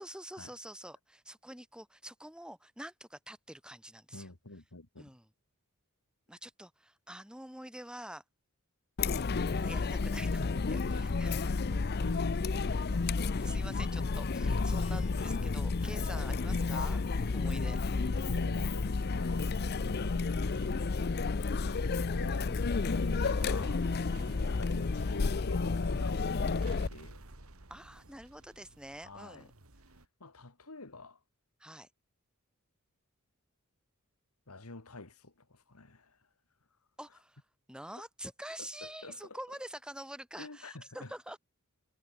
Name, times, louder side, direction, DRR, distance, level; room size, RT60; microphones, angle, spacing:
voice 1, 0.0-4.3 5.0-5.3 6.3-8.2 9.5-11.3 12.7-17.0 17.3-17.8 24.1-24.4 27.7-29.5 31.6-31.9 37.0-37.4 37.7-41.4, right 1 dB, 5° right, 7.9 m, -47 dB
voice 2, 4.1-5.1 10.4-11.1 12.0-12.6 14.4-15.2 17.2-17.5 18.3-21.2 21.6-22.6 22.9-23.9 24.4-27.2 29.0-29.5 30.2-31.2 34.5-36.2 38.6-39.4 40.4-41.1, left 2 dB, 90° left, 2.4 m, -46 dB
Chatter, 9.0-26.9, left 4 dB, 45° left, 0.6 m, -31 dB
sound 1, 18.8-30.1, right 2 dB, 75° right, 2.6 m, -54 dB
head